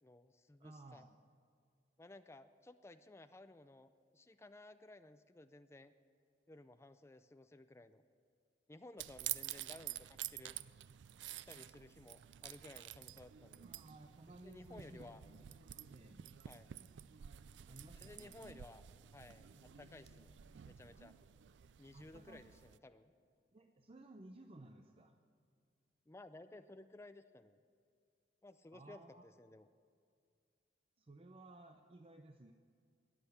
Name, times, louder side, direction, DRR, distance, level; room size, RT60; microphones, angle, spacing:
voice 1, 0.0-1.0 2.0-5.9 6.5-8.0 8.7-10.6 11.5-13.7 14.4-15.2 16.5-16.7 18.0-18.8 19.1-20.4 20.7-21.2 21.8-23.1 26.1-27.6 28.4-29.7, left 2 dB, 15° left, 10 dB, 0.4 m, -57 dB
voice 2, 0.6-1.2 13.6-15.4 15.9-16.3 17.7-18.6 21.9-22.5 23.5-25.2 28.7-29.3 31.0-32.5, right 2 dB, 35° right, 5 dB, 0.6 m, -57 dB
sound 1, 9.0-22.8, right 13 dB, 90° right, 0.4 m, -50 dB
sound 2, 12.8-25.6, left 4 dB, 50° left, 3.1 m, -72 dB
14.0 x 10.0 x 8.0 m, 2.2 s
head